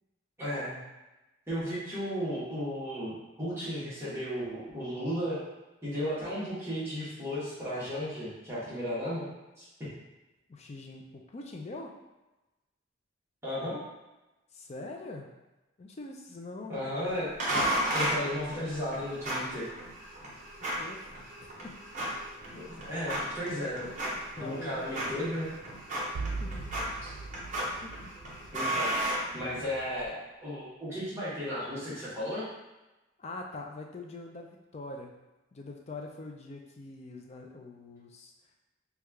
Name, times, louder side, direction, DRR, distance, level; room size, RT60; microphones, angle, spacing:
voice 1, 0.4-0.8 1.5-5.4 5.8-9.3 9.6-9.9 13.4-13.8 16.7-17.4 17.9-19.7 22.5-23.9 24.4-25.5 28.5-28.9 29.3-32.5, equal, 15° right, -12 dB, 1.1 m, -34 dB
voice 2, 10.5-12.0 14.5-15.3 15.8-16.7 20.6-21.8 24.4-24.9 26.4-26.7 27.8-27.9 33.2-35.1 35.5-38.3, left 2 dB, 30° left, 2 dB, 0.3 m, -43 dB
sound 1, 17.4-29.9, right 1 dB, 35° right, 0.6 m, -34 dB
sound 2, 26.2-29.0, right 3 dB, 85° right, 0.4 m, -39 dB
3.0 x 2.3 x 3.4 m, 1.0 s
head